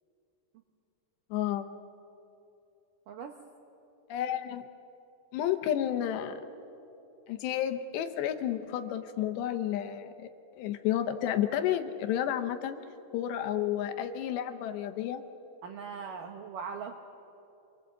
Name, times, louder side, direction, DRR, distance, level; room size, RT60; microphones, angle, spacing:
voice 1, 1.3-1.7 4.1-4.6 5.3-6.3 7.3-12.8 13.1-15.2, left 11 dB, 75° left, 8 dB, 2.9 m, -31 dB
voice 2, 15.6-17.0, right 6 dB, 75° right, 4 dB, 1.9 m, -40 dB
27.5 x 23.5 x 7.9 m, 2.9 s
omnidirectional pair, 5.4 m